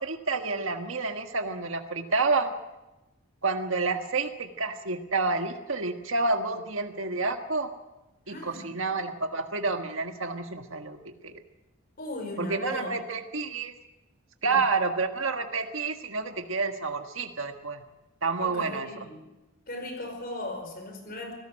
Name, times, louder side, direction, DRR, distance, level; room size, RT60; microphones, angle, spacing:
voice 1, 0.0-2.5 3.4-7.7 8.3-11.0 11.2-11.3 12.4-13.7 14.4-17.8 18.2-18.9, right 3 dB, 70° right, 6 dB, 1.6 m, -29 dB
voice 2, 8.3-8.7 12.0-12.9 14.5-14.6 18.4-19.3 19.7-21.3, left 1 dB, 45° left, 4 dB, 5.0 m, -37 dB
25.0 x 17.5 x 6.5 m, 0.99 s
head